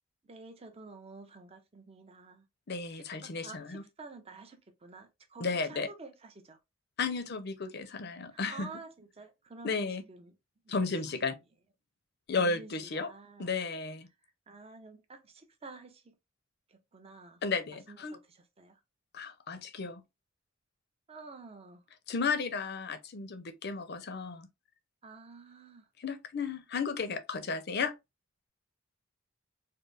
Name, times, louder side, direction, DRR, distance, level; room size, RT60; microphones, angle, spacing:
voice 1, 0.2-2.5 3.2-6.6 8.3-10.3 10.6-10.9 12.4-13.5 14.5-16.1 16.7-17.4 17.9-18.8 21.1-21.8 25.0-25.9, right 3 dB, 30° right, 0.7 m, -50 dB
voice 2, 2.7-3.8 5.4-5.9 7.0-8.7 9.6-10.0 10.7-11.3 12.3-13.1 13.4-14.1 17.4-18.2 19.1-20.0 22.1-24.5 26.0-27.9, left 4 dB, 55° left, 0.6 m, -33 dB
4.4 x 2.0 x 3.3 m
head